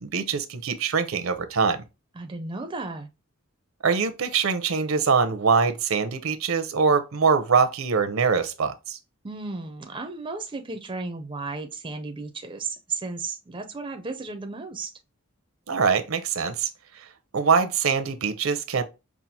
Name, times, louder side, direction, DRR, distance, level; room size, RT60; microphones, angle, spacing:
voice 1, 0.0-1.8 3.8-9.0 15.7-16.7 17.3-18.8, right 5 dB, 70° right, 0.6 m, -23 dB
voice 2, 2.1-3.1 9.2-14.9, right 3 dB, 20° right, 0.4 m, -34 dB
5.5 x 2.4 x 2.7 m
head